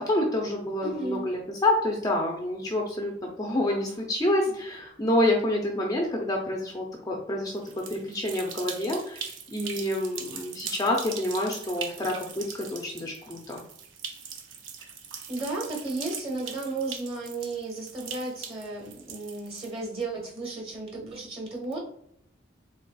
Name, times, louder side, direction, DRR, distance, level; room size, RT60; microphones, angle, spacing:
voice 1, 0.0-13.6, left 1 dB, 20° left, 0 dB, 0.5 m, -28 dB
voice 2, 0.8-1.3 4.5-4.6 15.3-21.8, right 3 dB, 30° right, -2 dB, 1.3 m, -34 dB
sound 1, 7.6-20.0, right 6 dB, 70° right, 0.6 m, -41 dB
3.9 x 3.5 x 2.3 m, 0.70 s
head